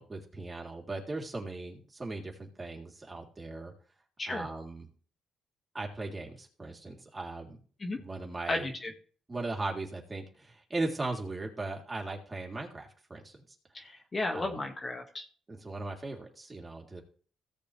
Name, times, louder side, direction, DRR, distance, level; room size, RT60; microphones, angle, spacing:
voice 1, 0.0-3.7 4.3-4.9 5.7-7.6 7.9-8.7 9.3-13.4 14.3-14.5 15.5-17.0, right 2 dB, 25° right, 1 dB, 3.6 m, -38 dB
voice 2, 8.5-8.9 13.7-15.3, left 2 dB, 30° left, 3 dB, 2.1 m, -34 dB
17.0 x 7.0 x 3.5 m, 0.42 s
cardioid pair, 90°, 0 cm